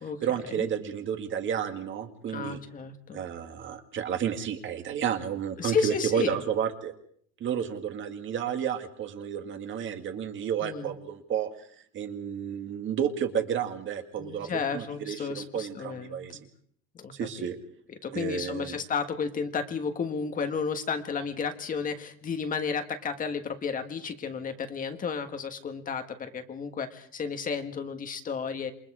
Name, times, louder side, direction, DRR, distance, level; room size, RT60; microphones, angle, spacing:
voice 1, 0.2-2.6 3.1-6.9 7.4-11.7 11.9-16.4 17.1-17.6 18.1-18.8, right 8 dB, 35° right, 6 dB, 2.0 m, -31 dB
voice 2, 2.3-3.2 5.6-6.4 10.6-10.9 14.2-16.4 16.9-17.5 18.0-28.7, left 5 dB, 25° left, 7 dB, 1.5 m, -32 dB
28.0 x 22.0 x 4.9 m, 0.63 s
cardioid pair, 180°, 33 cm